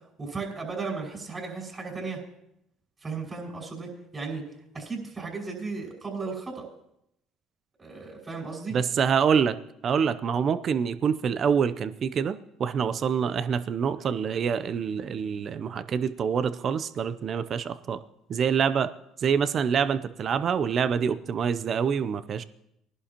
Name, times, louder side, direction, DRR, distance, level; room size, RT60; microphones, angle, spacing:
voice 1, 0.2-2.2 3.0-4.4 4.7-6.6 7.8-8.8, right 4 dB, 30° right, -2 dB, 5.6 m, -35 dB
voice 2, 8.7-9.6 9.8-18.0 18.3-18.9 19.2-22.4, right 7 dB, 50° right, 13 dB, 0.6 m, -26 dB
19.5 x 11.0 x 3.0 m, 0.79 s
supercardioid pair, 70°, 0 cm